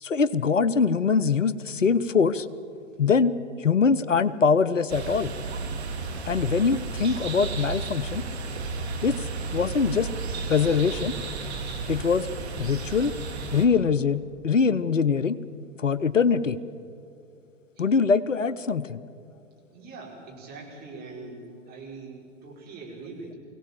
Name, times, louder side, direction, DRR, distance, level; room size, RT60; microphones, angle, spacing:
voice 1, 0.0-2.5 3.0-3.3 3.6-5.3 6.3-8.2 9.0-9.1 9.5-10.1 10.5-11.1 11.9-12.3 12.6-13.1 13.5-15.4 15.8-16.6 17.8-19.0, left 5 dB, 90° left, 16 dB, 0.8 m, -23 dB
sound 1, 4.9-13.7, right 3 dB, 60° right, 2.4 m, -33 dB
voice 2, 19.7-23.3, right 3 dB, 25° right, -2 dB, 5.1 m, -42 dB
23.5 x 17.0 x 7.3 m, 2.5 s
figure-of-eight pair, 110°, 37 cm